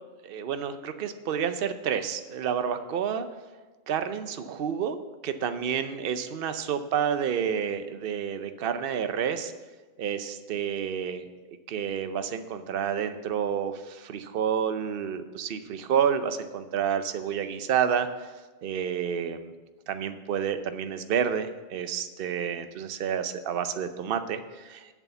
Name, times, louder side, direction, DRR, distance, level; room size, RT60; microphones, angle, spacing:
voice 1, 0.2-3.3 3.9-5.0 5.2-9.5 10.0-11.2 11.7-18.1 18.6-19.5 19.9-24.8, right 8 dB, 65° right, 10 dB, 0.9 m, -29 dB
8.4 x 7.3 x 6.9 m, 1.3 s
omnidirectional pair, 1.1 m